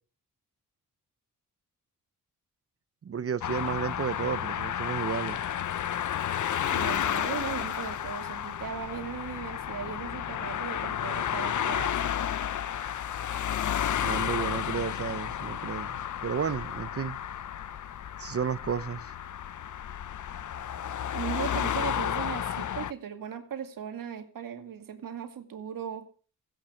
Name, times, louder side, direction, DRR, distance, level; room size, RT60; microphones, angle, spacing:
voice 1, 3.0-5.4 13.9-17.2 18.2-19.1, right 7 dB, 45° right, 0.8 m, -32 dB
sound 1, 3.4-22.9, left 10 dB, 65° left, 0.8 m, -32 dB
voice 2, 6.7-12.2 21.1-26.1, right 8 dB, 90° right, 2.4 m, -38 dB
16.5 x 10.5 x 6.3 m
cardioid pair, 100°, 32 cm